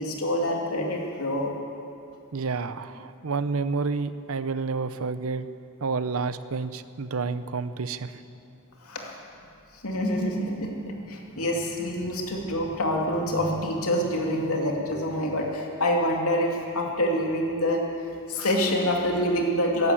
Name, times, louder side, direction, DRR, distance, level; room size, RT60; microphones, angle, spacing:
voice 1, 0.0-1.5 8.8-9.2 9.8-17.8 18.3-19.9, equal, 90° left, 0 dB, 2.5 m, -26 dB
voice 2, 2.3-5.5 5.8-8.2, right 4 dB, 75° right, 13 dB, 0.7 m, -29 dB
15.0 x 11.0 x 8.5 m, 2.6 s
head